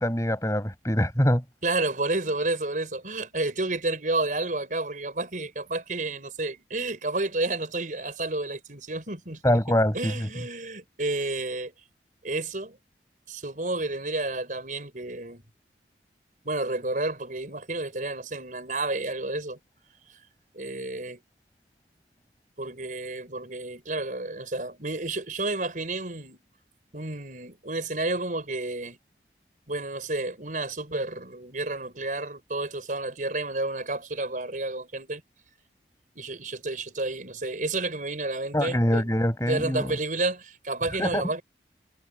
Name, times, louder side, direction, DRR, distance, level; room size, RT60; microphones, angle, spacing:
voice 1, 0.0-1.4 9.4-10.1 38.5-40.0 41.0-41.2, equal, 20° left, 6.7 m, -24 dB
voice 2, 1.6-9.6 9.9-11.7 12.2-12.8 13.3-15.4 16.4-19.6 20.5-21.2 22.6-26.4 26.9-29.0 29.7-35.2 36.1-39.1 39.4-41.4, right 2 dB, 50° right, 4.9 m, -30 dB
head